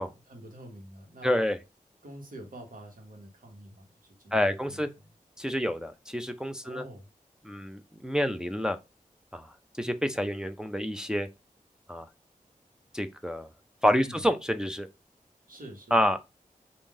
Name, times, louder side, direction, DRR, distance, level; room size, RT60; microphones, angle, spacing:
voice 1, 0.0-1.3 2.0-5.1 6.6-7.1 14.0-14.2 15.5-16.0, right 1 dB, 70° right, 1.4 m, -47 dB
voice 2, 1.2-1.6 4.3-4.9 5.4-6.8 7.4-8.8 9.3-9.5 9.8-11.3 11.9-12.1 12.9-13.5 13.8-14.9 15.9-16.2, equal, 5° right, 0.5 m, -28 dB
3.6 x 2.6 x 3.5 m
cardioid pair, 45°, 15 cm